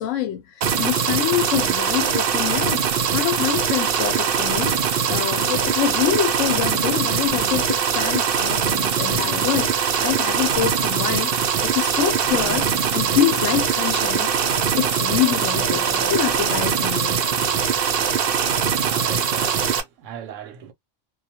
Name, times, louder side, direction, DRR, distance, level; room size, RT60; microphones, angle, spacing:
voice 1, 0.0-17.2, left 11 dB, 85° left, 0.9 m, -26 dB
sound 1, 0.6-19.8, right 7 dB, 60° right, 0.7 m, -22 dB
sound 2, 4.4-5.5 7.2-7.8 9.1-10.3 10.5-17.9, left 2 dB, 45° left, 0.3 m, -39 dB
voice 2, 18.7-20.7, right 8 dB, 80° right, 1.0 m, -38 dB
2.3 x 2.2 x 2.7 m
omnidirectional pair, 1.3 m